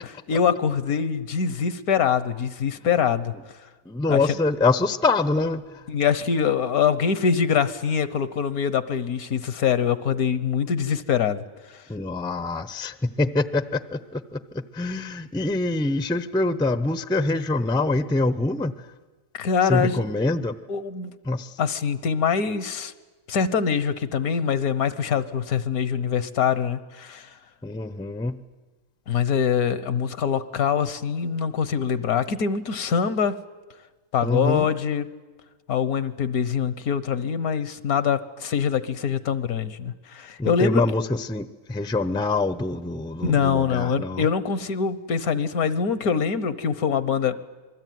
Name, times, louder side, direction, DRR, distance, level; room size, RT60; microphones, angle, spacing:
voice 1, 0.0-3.3 4.1-4.2 5.9-11.8 19.3-20.0 20.7-21.1 21.6-22.9 23.3-27.4 29.1-33.4 34.1-35.1 35.7-40.8 43.2-47.4, left 7 dB, 75° left, 15 dB, 1.5 m, -24 dB
voice 2, 3.9-5.8 11.9-18.8 19.6-20.6 21.2-21.6 27.6-28.4 34.2-34.7 40.4-44.3, left 2 dB, 5° left, 13 dB, 0.5 m, -25 dB
27.5 x 21.0 x 9.4 m, 1.3 s
omnidirectional pair, 1.6 m